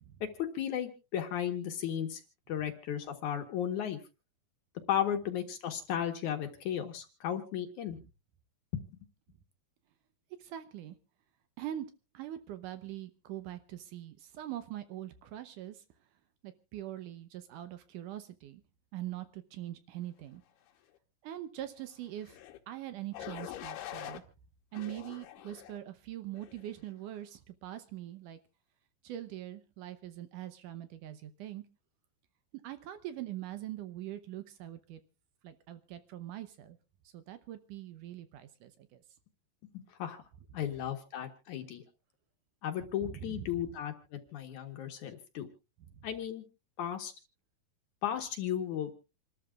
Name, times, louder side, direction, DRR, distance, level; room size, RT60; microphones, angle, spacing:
voice 1, 0.2-2.2 2.5-4.0 4.9-8.0 8.7-8.8 39.7-40.2 40.5-41.8 42.6-45.5 46.0-46.4 46.8-47.1 48.0-49.0, left 9 dB, 65° left, 5 dB, 2.3 m, -35 dB
voice 2, 10.4-11.0 11.6-11.9 12.1-15.8 16.4-18.6 18.9-20.4 21.2-22.4 22.7-24.2 24.7-28.4 29.0-31.6 32.6-35.0 35.4-36.8 37.0-39.0 43.0-43.7 45.9-46.1, right 12 dB, 75° right, 11 dB, 2.0 m, -43 dB
sound 1, 22.2-22.6 23.1-24.2 24.7-25.8 26.4-26.7, left 12 dB, 90° left, 3.1 m, -44 dB
28.0 x 13.0 x 2.4 m, 0.31 s
omnidirectional pair, 4.5 m